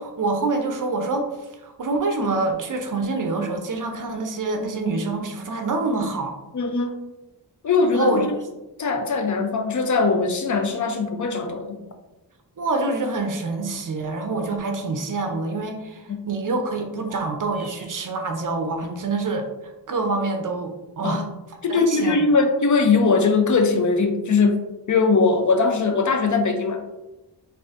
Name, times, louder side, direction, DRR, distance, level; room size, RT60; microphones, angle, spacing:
voice 1, 0.0-1.3 1.6-6.4 7.9-8.4 12.6-19.5 19.9-21.3 21.7-22.2, right 3 dB, 50° right, 4 dB, 0.5 m, -26 dB
voice 2, 6.5-6.9 7.6-8.3 8.8-11.8 16.1-16.2 21.0-21.2 21.6-26.8, left 4 dB, 45° left, 5 dB, 0.4 m, -20 dB
sound 1, 16.9-18.1, right 1 dB, 5° right, 1.2 m, -42 dB
4.0 x 2.6 x 2.4 m, 1.0 s
wide cardioid pair, 115°, 42 cm